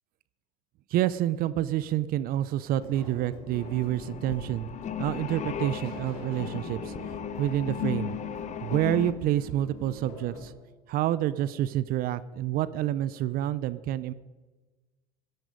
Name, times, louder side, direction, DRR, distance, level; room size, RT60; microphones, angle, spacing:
voice 1, 0.9-4.7 5.0-6.9 7.4-8.2 8.6-10.5 10.9-14.1, right 13 dB, 50° right, 17 dB, 0.6 m, -28 dB
sound 1, 2.1-10.2, right 4 dB, 70° right, 5.1 m, -50 dB
sound 2, 2.7-10.5, left 3 dB, 85° left, 2.4 m, -45 dB
sound 3, 3.5-9.1, left 9 dB, 40° left, 1.1 m, -36 dB
14.5 x 11.0 x 5.1 m, 1.3 s
hypercardioid pair, 90°, 19 cm